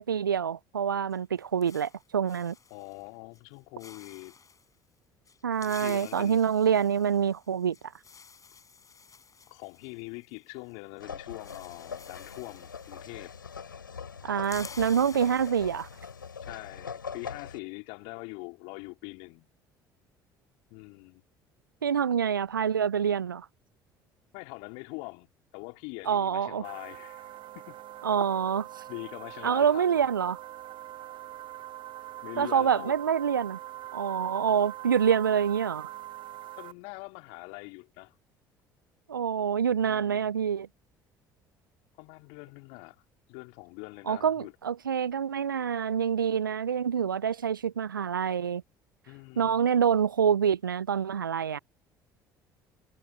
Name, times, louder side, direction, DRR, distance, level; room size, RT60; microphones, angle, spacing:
voice 1, 0.0-2.6 5.4-7.8 14.2-15.9 21.8-23.5 26.1-26.6 28.0-28.7 29.4-30.4 32.4-33.6 33.9-35.9 39.1-40.7 44.1-48.6 49.4-51.6, right 7 dB, 85° right, 0.5 m, -26 dB
sound 1, 1.1-3.1 3.3-3.5 3.8-4.7 5.3-10.7 11.0-11.1 11.3-13.7 14.0-16.4, left 6 dB, 30° left, 4.8 m, -51 dB
voice 2, 2.7-4.3 5.6-6.4 9.5-13.3 16.4-19.5 20.7-21.2 24.3-27.8 28.9-30.0 32.2-33.0 36.6-38.1 39.7-40.3 42.0-43.0 43.3-44.5 49.0-49.6, left 31 dB, 65° left, 3.4 m, -43 dB
sound 2, 11.0-17.6, left 6 dB, 85° left, 7.1 m, -42 dB
sound 3, 26.6-36.7, right 14 dB, 50° right, 1.0 m, -43 dB
figure-of-eight pair, 55°, 11 cm